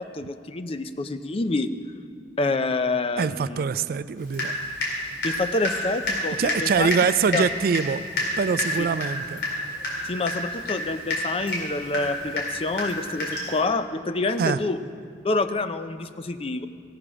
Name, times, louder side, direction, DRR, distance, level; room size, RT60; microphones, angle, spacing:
voice 1, 0.0-1.7 2.4-3.6 5.2-6.9 7.3-7.4 10.0-14.8 15.2-16.7, left 3 dB, 35° left, 10 dB, 0.5 m, -27 dB
voice 2, 3.2-4.6 6.4-8.0 8.4-9.4 14.4-14.6, right 6 dB, 55° right, 15 dB, 0.3 m, -24 dB
Water tap faucet / Drip, 4.3-5.0 5.2-13.6, left 1 dB, 65° left, 3.4 m, -29 dB
17.0 x 6.7 x 6.1 m, 2.2 s
head